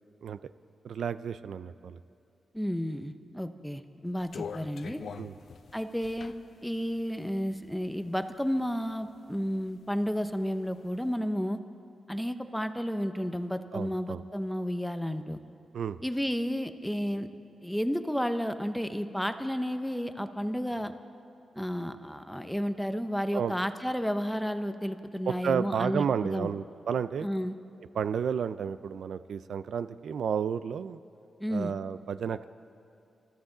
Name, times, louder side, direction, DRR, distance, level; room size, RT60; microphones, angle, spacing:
voice 1, 0.2-0.5 0.8-2.0 5.2-5.3 13.7-14.2 15.7-16.0 23.3-23.5 25.3-27.3 27.9-31.0 31.5-32.5, right 7 dB, 70° right, 14 dB, 0.4 m, -32 dB
voice 2, 2.5-5.0 5.7-6.3 6.6-11.6 12.1-15.4 16.0-17.3 17.6-20.9 21.6-26.5 27.2-27.5 31.4-31.7, equal, ahead, 9 dB, 0.6 m, -32 dB
sound 1, 4.2-8.2 8.6-9.6 10.0-11.0, left 6 dB, 60° left, 0.6 m, -44 dB
27.0 x 13.5 x 3.9 m, 2.5 s
wide cardioid pair, 145°, 0 cm